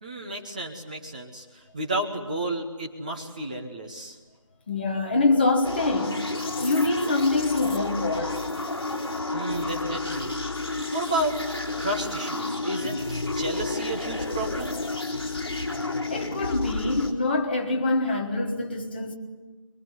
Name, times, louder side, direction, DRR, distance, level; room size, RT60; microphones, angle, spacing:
voice 1, 0.0-4.2 9.3-10.4 10.9-11.4 11.8-14.8, right 1 dB, 15° right, 1.1 m, -32 dB
voice 2, 4.7-6.2 6.5-8.4 16.1-19.1, left 2 dB, 20° left, 1.5 m, -25 dB
sound 1, 5.6-17.1, left 2 dB, 45° left, 3.7 m, -30 dB
25.0 x 23.0 x 9.6 m
figure-of-eight pair, 170°, 17 cm